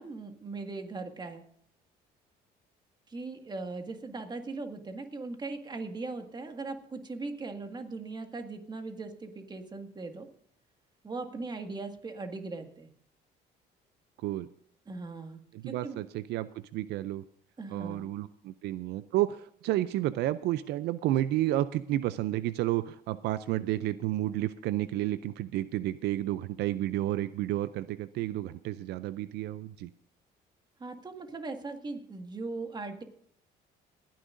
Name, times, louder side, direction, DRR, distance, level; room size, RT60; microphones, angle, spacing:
voice 1, 0.0-1.4 3.1-10.3 11.0-12.9 14.9-15.4 15.7-16.0 17.6-18.1 30.8-33.0, right 3 dB, 25° right, 5 dB, 1.9 m, -39 dB
voice 2, 14.2-14.5 15.5-17.2 17.7-29.9, right 14 dB, 80° right, 14 dB, 0.5 m, -31 dB
27.5 x 10.0 x 2.6 m, 0.65 s
cardioid pair, 110°, 17 cm